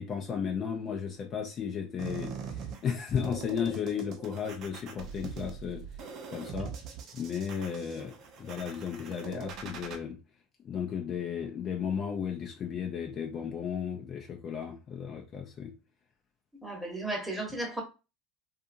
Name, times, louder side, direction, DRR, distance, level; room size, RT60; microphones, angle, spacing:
voice 1, 0.0-5.8 6.3-6.7 7.1-8.1 8.4-10.2 10.6-15.7, left 7 dB, 40° left, 0.5 m, -34 dB
sound 1, 2.0-10.0, right 6 dB, 50° right, 0.5 m, -42 dB
voice 2, 16.6-17.8, right 2 dB, 5° right, 1.1 m, -34 dB
2.6 x 2.4 x 2.5 m
hypercardioid pair, 85°, 0 cm